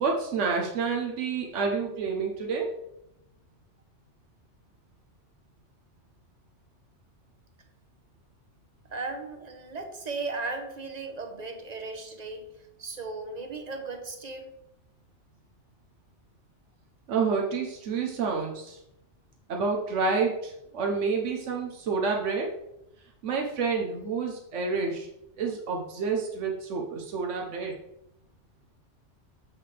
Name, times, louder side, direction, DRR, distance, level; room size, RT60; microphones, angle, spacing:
voice 1, 0.0-2.7 17.1-18.8 19.5-22.5 23.2-25.1 25.4-27.7, right 4 dB, 85° right, 0 dB, 1.2 m, -29 dB
voice 2, 8.9-12.5 12.8-14.5, right 3 dB, 40° right, 5 dB, 1.0 m, -36 dB
7.5 x 6.4 x 3.3 m, 0.83 s
omnidirectional pair, 1.2 m